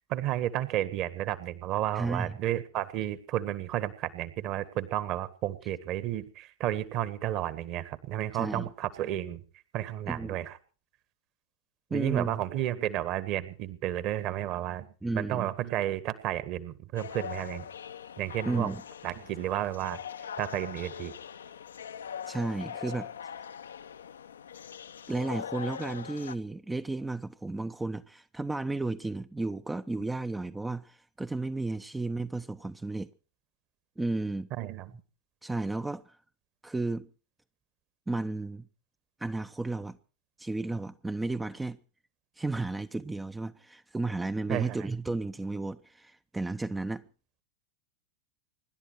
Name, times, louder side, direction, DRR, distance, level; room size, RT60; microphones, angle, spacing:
voice 1, 0.1-9.4 9.7-10.6 11.9-14.9 15.1-17.7 18.2-18.7 19.0-20.0 20.4-21.1 34.6-34.9 44.5-44.9, right 13 dB, 40° right, 1.7 m, -32 dB
voice 2, 1.9-2.3 8.3-8.7 10.1-10.4 11.9-12.4 15.0-15.5 18.4-18.8 22.3-23.1 25.1-33.1 34.0-34.5 35.4-36.2 36.6-37.1 38.1-38.7 39.2-40.0 40.4-41.8 42.4-47.0, right 2 dB, 10° right, 0.7 m, -33 dB
sound 1, 17.0-26.4, left 8 dB, 65° left, 0.8 m, -42 dB
25.5 x 12.0 x 4.6 m
figure-of-eight pair, 90°, 0 cm